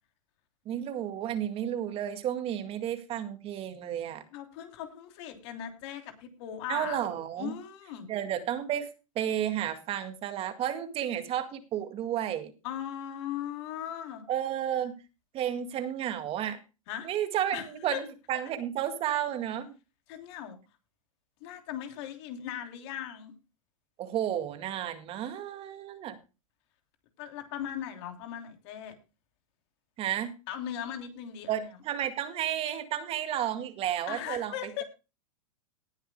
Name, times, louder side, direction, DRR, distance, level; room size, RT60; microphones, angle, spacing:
voice 1, 0.7-4.2 6.7-7.5 8.1-8.9 9.2-12.5 14.3-14.9 15.3-16.6 17.0-19.7 24.0-26.2 30.0-30.3 31.5-34.5, right 10 dB, 35° right, 8 dB, 2.1 m, -32 dB
voice 2, 4.3-7.0 7.4-8.1 12.6-14.2 16.9-17.1 17.5-18.0 20.1-20.6 21.4-23.3 27.2-29.0 30.5-31.7 34.1-34.8, left 10 dB, 55° left, 5 dB, 3.1 m, -38 dB
19.0 x 11.5 x 2.2 m, 0.30 s
hypercardioid pair, 120°, 18 cm